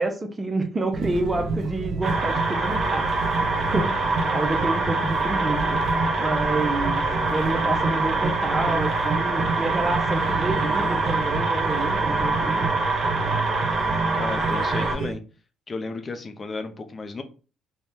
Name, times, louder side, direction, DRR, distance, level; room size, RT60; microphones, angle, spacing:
voice 1, 0.0-3.5 3.7-5.8 6.2-12.8, right 2 dB, 25° right, 4 dB, 0.6 m, -29 dB
sound 1, 0.9-15.2, right 3 dB, 65° right, 0.6 m, -30 dB
sound 2, 2.0-14.9, right 3 dB, 45° right, 1.0 m, -25 dB
voice 2, 14.1-15.2 15.7-17.2, left 3 dB, 35° left, 8 dB, 0.6 m, -33 dB
2.6 x 2.2 x 3.5 m, 0.36 s
supercardioid pair, 70°, 0 cm